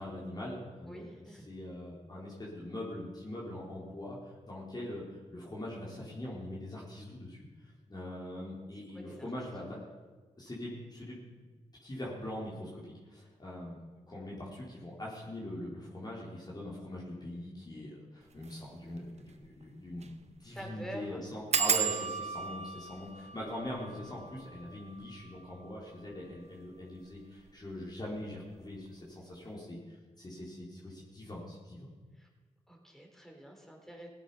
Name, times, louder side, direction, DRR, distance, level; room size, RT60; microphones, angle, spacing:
voice 1, 0.0-4.2 4.4-5.0 5.3-9.8 10.4-11.2 11.8-13.8 14.1-31.9, left 1 dB, 30° left, -5 dB, 4.1 m, -42 dB
voice 2, 0.9-1.5 8.9-9.3 9.6-9.8 20.4-21.2 32.2-32.3 32.7-34.1, equal, 5° left, 1 dB, 4.0 m, -47 dB
sound 1, 18.3-18.5 19.0-19.1 19.3-19.4 19.9-20.2 20.4-20.5 21.5-26.8 27.5-28.0 28.3-28.7 28.9-29.0, right 6 dB, 55° right, 1.1 m, -35 dB
17.0 x 9.1 x 5.6 m, 1.3 s
cardioid pair, 50°, 13 cm